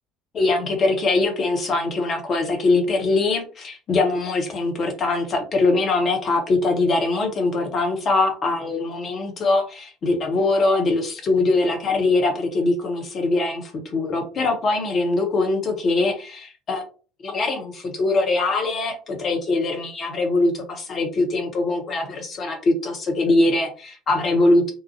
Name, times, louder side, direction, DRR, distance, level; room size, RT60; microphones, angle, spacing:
voice 1, 0.3-16.8 17.2-24.7, left 2 dB, 40° left, 3 dB, 0.9 m, -22 dB
2.8 x 2.1 x 2.8 m, 0.38 s
figure-of-eight pair, 60°, 0 cm